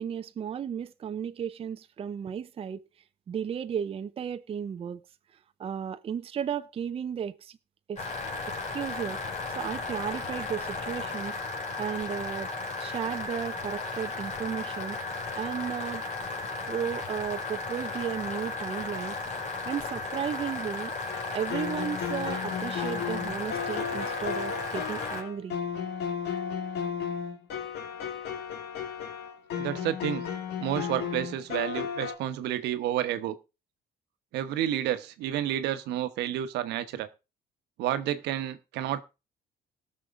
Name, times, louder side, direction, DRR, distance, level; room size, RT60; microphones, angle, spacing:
voice 1, 0.0-2.8 3.3-5.0 5.6-7.6 7.9-8.0 8.5-9.2 9.6-11.4 11.8-12.5 12.8-15.0 15.3-16.0 16.7-19.2 19.7-20.9 21.3-25.6, right 8 dB, 35° right, 0.5 m, -34 dB
sound 1, 8.0-25.2, left 3 dB, 45° left, 4.6 m, -35 dB
sound 2, 21.1-32.1, left 7 dB, 75° left, 1.8 m, -34 dB
voice 2, 29.6-30.2 30.6-33.4 34.3-37.1 37.8-39.0, right 11 dB, 85° right, 1.1 m, -30 dB
18.0 x 6.4 x 3.7 m
cardioid pair, 110°, 17 cm